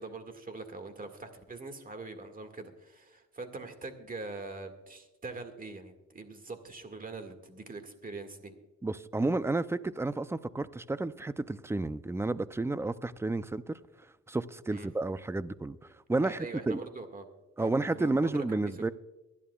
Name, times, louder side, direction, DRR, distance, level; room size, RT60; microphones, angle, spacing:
voice 1, 0.0-8.5 14.7-14.9 16.2-17.2 17.6-18.8, right 3 dB, 30° right, 1.9 m, -43 dB
voice 2, 8.8-13.8 14.3-15.8 16.1-16.8 17.6-18.9, right 2 dB, 10° right, 0.4 m, -31 dB
23.5 x 11.0 x 2.3 m
cardioid pair, 90°, 30 cm